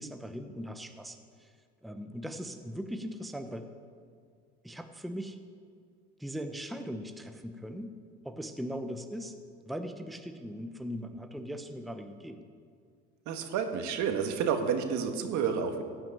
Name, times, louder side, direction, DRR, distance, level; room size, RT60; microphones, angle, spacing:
voice 1, 0.0-1.5 1.8-3.7 4.6-5.4 6.2-7.9 8.2-9.3 9.6-12.4, equal, ahead, 6 dB, 0.8 m, -39 dB
voice 2, 13.2-15.8, right 7 dB, 65° right, 5 dB, 1.6 m, -30 dB
14.5 x 6.3 x 9.0 m, 2.1 s
supercardioid pair, 90°, 32 cm